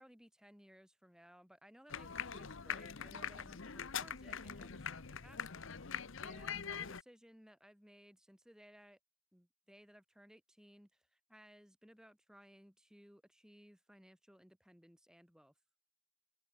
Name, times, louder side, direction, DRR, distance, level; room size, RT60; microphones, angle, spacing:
voice 1, 0.0-5.9 6.2-9.0 9.3-15.5, equal, 5° right, 3.3 m, -61 dB
sound 1, 1.9-7.0, left 7 dB, 65° left, 1.0 m, -43 dB
open air
head